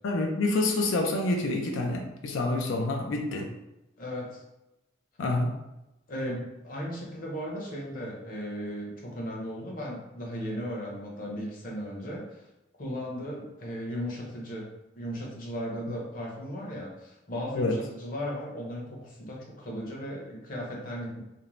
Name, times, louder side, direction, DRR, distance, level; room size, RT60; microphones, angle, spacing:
voice 1, 0.0-3.5 5.2-5.5 17.6-17.8, left 2 dB, 90° left, 2 dB, 0.4 m, -27 dB
voice 2, 4.0-4.4 6.1-12.4 12.8-14.6 15.0-21.2, equal, 45° left, -2 dB, 0.7 m, -36 dB
2.5 x 2.0 x 3.0 m, 0.93 s
head